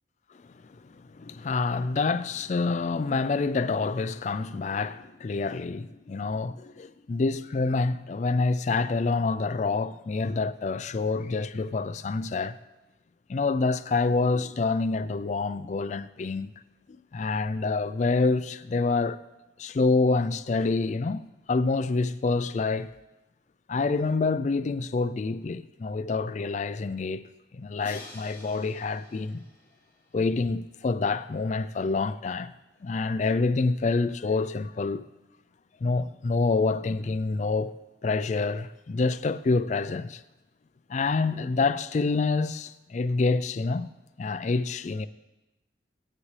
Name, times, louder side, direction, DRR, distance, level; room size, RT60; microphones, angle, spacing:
voice 1, 0.8-12.6 13.3-16.5 17.1-19.2 19.6-21.2 21.5-23.0 23.7-27.2 27.5-29.4 30.1-32.5 32.8-35.0 35.8-37.7 38.0-40.2 40.9-43.9 44.2-45.1, left 3 dB, 40° left, 0.3 m, -27 dB
Crash cymbal, 27.8-30.8, left 2 dB, 10° left, 2.8 m, -49 dB
18.0 x 9.8 x 3.2 m
head